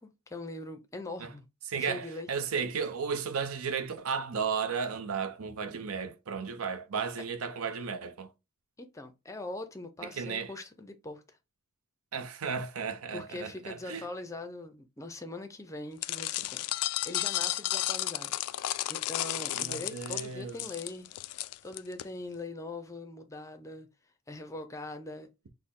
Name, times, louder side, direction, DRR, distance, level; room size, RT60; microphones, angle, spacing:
voice 1, 0.0-1.5 1.8-2.3 8.8-11.2 13.1-18.3 18.9-21.1 21.6-23.9 24.3-25.3, left 2 dB, 15° left, 0.5 m, -42 dB
voice 2, 1.7-8.3 10.0-10.5 12.1-14.1 19.5-20.6, right 6 dB, 80° right, 0.6 m, -34 dB
sound 1, 16.0-22.0, left 15 dB, 85° left, 0.3 m, -33 dB
6.3 x 2.1 x 3.6 m
head